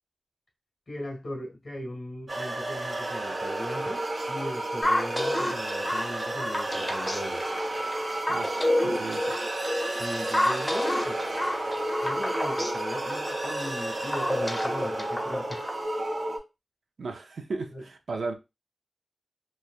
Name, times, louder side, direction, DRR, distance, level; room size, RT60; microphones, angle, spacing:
voice 1, 0.9-7.4 10.0-11.2 12.0-15.6 17.7-17.8, left 1 dB, 60° left, 1.4 m, -38 dB
sound 1, 2.3-16.4, right 1 dB, 55° right, 0.9 m, -32 dB
sound 2, 4.8-15.9, left 1 dB, 15° left, 0.8 m, -30 dB
voice 2, 8.3-9.3 17.0-18.3, right 3 dB, 85° right, 0.4 m, -35 dB
3.1 x 2.2 x 2.4 m
cardioid pair, 60°, 0 cm